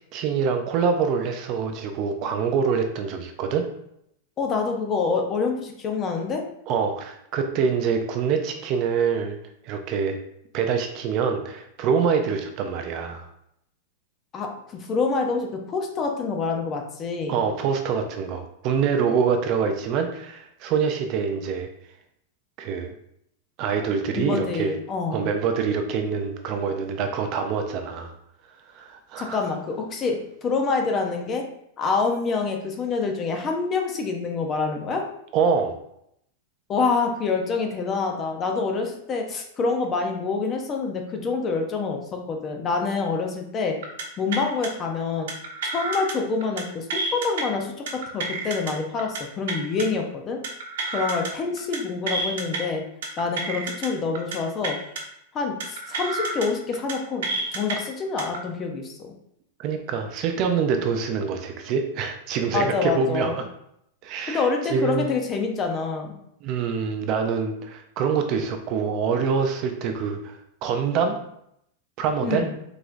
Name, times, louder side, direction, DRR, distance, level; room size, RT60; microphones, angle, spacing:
voice 1, 0.1-3.7 6.7-9.4 9.6-10.2 10.5-13.3 17.3-21.7 22.6-22.9 23.6-24.7 25.1-28.1 28.7-29.5 35.3-35.7 59.6-63.4 64.0-64.5 64.7-65.1 66.4-70.3 70.6-71.2 72.0-72.5, right 6 dB, 35° right, 5 dB, 0.5 m, -25 dB
voice 2, 4.4-6.4 14.3-17.4 24.2-25.3 29.2-31.4 31.8-35.0 36.7-43.8 44.2-45.3 45.6-50.4 50.9-52.8 53.2-54.8 55.3-59.1 62.5-63.4 64.3-66.2 72.2-72.6, left 4 dB, 20° left, 3 dB, 0.7 m, -26 dB
sound 1, 43.8-44.0 44.3-44.7 45.3-46.1 46.4-46.6 46.9-47.4 47.9-48.7 49.0-49.2 49.5-49.8 50.4-51.3 51.6-51.8 52.1-52.6 53.0-53.9 54.1-54.4 54.6-55.0 55.6-56.5 56.7-56.9 57.2-57.7 58.2-58.4, right 3 dB, 75° right, 1.0 m, -29 dB
4.8 x 3.7 x 2.6 m, 0.76 s
supercardioid pair, 160°, 0 cm